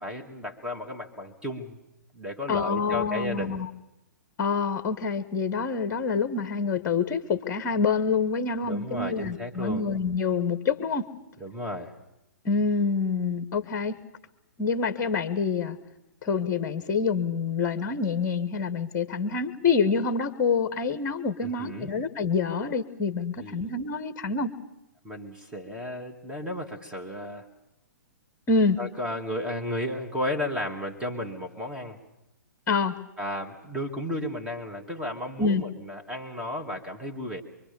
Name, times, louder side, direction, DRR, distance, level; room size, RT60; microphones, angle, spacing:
voice 1, 0.0-1.8 2.1-3.6 8.6-9.8 11.4-12.0 21.4-21.9 23.4-23.7 25.0-27.5 28.8-32.0 33.2-37.4, left 1 dB, 10° right, 1 dB, 2.5 m, -34 dB
voice 2, 2.5-3.7 4.4-11.1 12.4-13.9 14.6-15.8 16.2-24.5 28.5-28.8 32.7-33.0 35.4-35.6, left 5 dB, 25° left, 10 dB, 1.4 m, -26 dB
25.0 x 24.0 x 7.0 m, 0.87 s
figure-of-eight pair, 120°, 10 cm